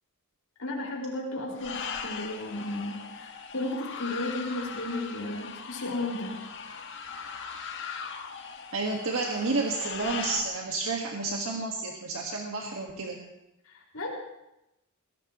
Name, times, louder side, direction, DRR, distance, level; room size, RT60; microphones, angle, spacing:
voice 1, 0.6-6.4 13.6-14.1, left 2 dB, 80° left, -1 dB, 4.8 m, -34 dB
sound 1, 1.6-10.4, left 6 dB, 55° left, 1.5 m, -39 dB
voice 2, 8.7-13.2, right 3 dB, 65° right, 0 dB, 1.6 m, -30 dB
20.5 x 17.5 x 3.0 m, 0.89 s
head